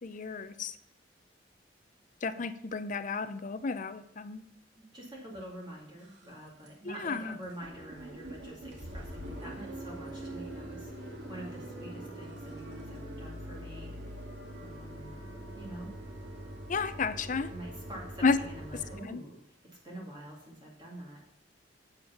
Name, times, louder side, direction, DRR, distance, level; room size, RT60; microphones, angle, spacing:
voice 1, 0.0-0.8 2.2-4.4 6.8-7.4 16.7-17.5 18.2-18.4 19.1-19.2, left 4 dB, 45° left, 12 dB, 0.6 m, -32 dB
voice 2, 4.8-14.1 14.6-15.1 15.5-15.9 17.5-21.4, right 1 dB, 25° right, -3 dB, 2.2 m, -46 dB
sound 1, 5.3-5.4 5.9-6.3 6.6-6.7 7.1-7.2 7.4-19.0, right 1 dB, 85° right, 2.1 m, -43 dB
8.2 x 7.1 x 5.7 m, 0.79 s
head